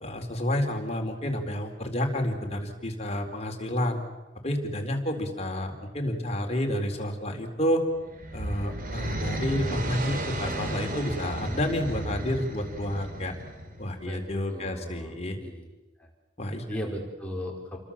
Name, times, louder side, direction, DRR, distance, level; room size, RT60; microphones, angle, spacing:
voice 1, 0.0-4.0 4.4-7.8 8.3-13.3 13.8-15.4 16.4-16.6, left 1 dB, 35° left, 3 dB, 4.1 m, -30 dB
sound 1, 7.9-14.0, right 1 dB, 50° right, 3.5 m, -33 dB
voice 2, 14.0-15.7 16.0-16.1 16.7-17.8, equal, 10° left, -1 dB, 5.0 m, -37 dB
30.0 x 23.5 x 7.4 m, 1.1 s
head